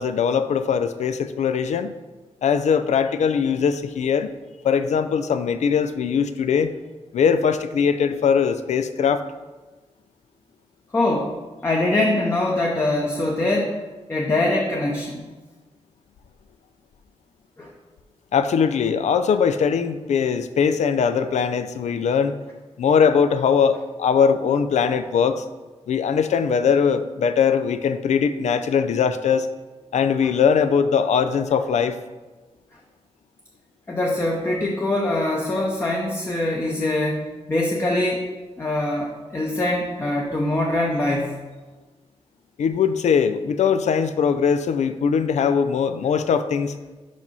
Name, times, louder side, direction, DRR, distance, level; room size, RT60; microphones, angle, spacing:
voice 1, 0.0-2.0 2.4-4.3 4.6-6.7 7.1-9.2 18.3-22.4 22.8-25.4 25.9-29.5 29.9-32.0 42.6-46.7, left 6 dB, 90° left, 11 dB, 0.4 m, -21 dB
voice 2, 10.9-11.3 11.6-13.8 14.1-15.2 17.6-17.7 30.2-30.3 33.9-38.3 38.6-41.4, left 1 dB, 20° left, -1 dB, 0.7 m, -23 dB
5.3 x 5.2 x 5.5 m, 1.2 s
wide cardioid pair, 155°, 11 cm